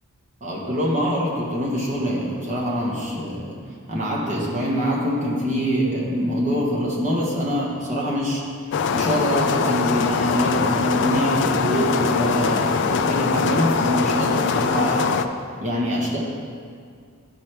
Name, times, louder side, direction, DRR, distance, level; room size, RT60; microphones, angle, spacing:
voice 1, 0.4-3.5 3.9-15.1 15.6-16.2, equal, 35° right, -4 dB, 1.1 m, -24 dB
sound 1, 8.7-15.3, left 5 dB, 55° left, 0.3 m, -22 dB
13.0 x 4.4 x 3.3 m, 2.1 s
head